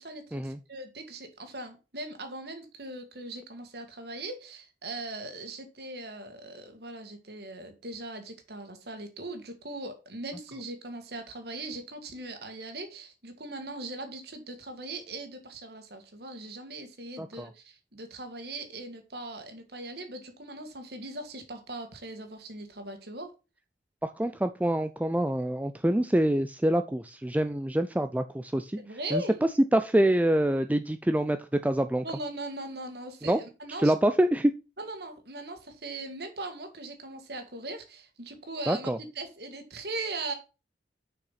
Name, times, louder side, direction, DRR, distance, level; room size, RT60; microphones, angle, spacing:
voice 1, 0.0-23.3 28.8-29.4 32.0-33.9 34.8-38.9 39.2-40.3, right 2 dB, 60° right, 6 dB, 2.0 m, -39 dB
voice 2, 17.2-17.5 24.0-28.8 29.1-29.2 29.7-31.4 31.6-32.0 33.2-33.4 33.8-34.5 38.7-39.0, right 1 dB, 10° right, 9 dB, 0.4 m, -26 dB
6.7 x 5.8 x 5.7 m, 0.30 s
head